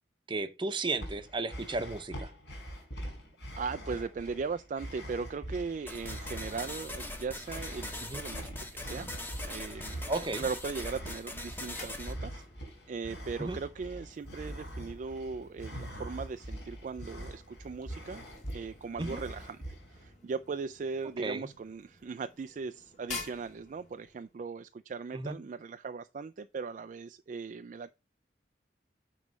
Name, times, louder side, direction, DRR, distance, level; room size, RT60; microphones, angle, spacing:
voice 1, 0.3-2.3 8.1-8.2 10.1-10.4 13.4-13.6 19.0-19.2 21.2-21.5 25.1-25.4, right 3 dB, 25° right, 0.7 m, -34 dB
sound 1, 0.9-20.1, equal, 70° left, 4.0 m, -43 dB
voice 2, 3.6-9.1 9.4-12.4 12.9-18.3 18.5-19.6 19.9-27.9, right 5 dB, 45° right, 0.3 m, -38 dB
sound 2, 5.9-12.1, left 1 dB, 10° left, 1.0 m, -41 dB
sound 3, 11.4-24.4, left 4 dB, 40° left, 2.3 m, -51 dB
9.4 x 3.2 x 5.2 m
head